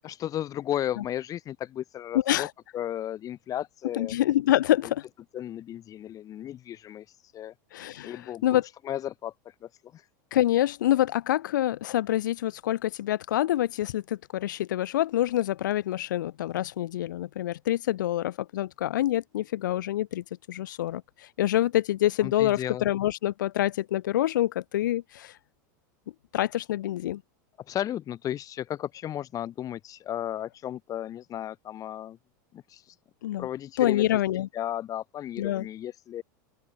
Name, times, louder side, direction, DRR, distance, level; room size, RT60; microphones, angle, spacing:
voice 1, 0.0-2.5 2.7-4.1 5.3-7.1 7.3-7.5 8.0-8.6 8.8-9.3 9.6-10.0 22.2-22.9 27.7-32.2 32.5-32.8 33.4-34.1 34.5-36.2, left 11 dB, 35° left, 3.7 m, -34 dB
voice 2, 2.1-2.5 3.9-5.0 7.7-8.7 10.3-25.4 26.3-27.2 33.2-33.5 33.8-34.5 35.4-35.7, left 13 dB, 85° left, 0.9 m, -26 dB
open air
supercardioid pair, 120°, 10 cm